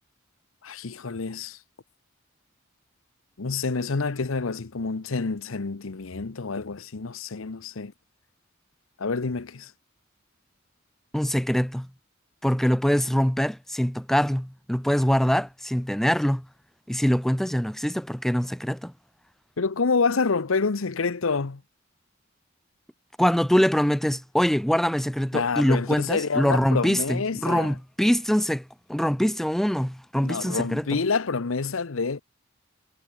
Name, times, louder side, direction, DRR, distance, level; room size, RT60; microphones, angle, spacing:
voice 1, 0.6-1.6 3.4-7.9 9.0-9.7 19.6-21.6 25.3-27.7 30.2-32.2, left 4 dB, 80° left, 0.8 m, -27 dB
voice 2, 11.1-11.9 12.4-16.4 16.9-18.9 23.2-28.6 28.9-31.0, equal, ahead, 0.5 m, -24 dB
head